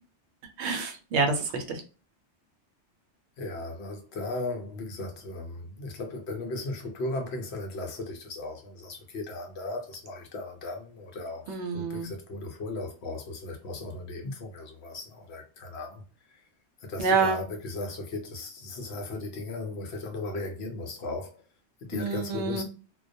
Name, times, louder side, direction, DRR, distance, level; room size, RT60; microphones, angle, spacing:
voice 1, 0.6-1.8 11.5-12.1 17.0-17.4 21.9-22.6, right 4 dB, 70° right, 0.8 m, -27 dB
voice 2, 3.4-11.5 11.7-16.0 16.3-16.4 16.8-21.4 21.8-22.6, left 2 dB, 65° left, 0.9 m, -36 dB
2.2 x 2.2 x 2.6 m
omnidirectional pair, 1.2 m